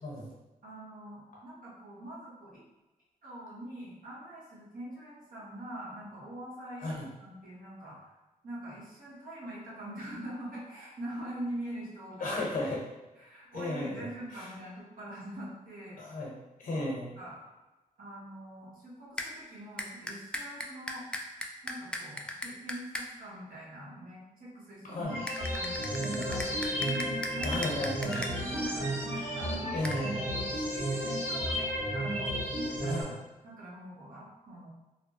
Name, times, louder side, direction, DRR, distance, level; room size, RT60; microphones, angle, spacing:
voice 1, 0.6-2.6 3.2-8.1 8.4-12.5 13.2-16.0 17.2-17.4 18.0-21.0 21.6-29.8 30.3-33.1 33.4-34.7, right 1 dB, 75° right, -6 dB, 1.2 m, -44 dB
voice 2, 12.2-12.8 13.5-14.5 16.0-17.1 24.8-25.2 27.4-28.2 29.7-30.3 32.8-33.1, left 2 dB, 70° left, -3 dB, 1.0 m, -35 dB
sound 1, 19.2-19.3 19.8-23.1 25.3-28.3 29.8-30.0, left 1 dB, 5° left, 0.3 m, -37 dB
sound 2, 25.0-33.0, equal, 45° right, 1.5 m, -33 dB
3.1 x 2.0 x 2.9 m, 1.1 s
cardioid pair, 70°, 15 cm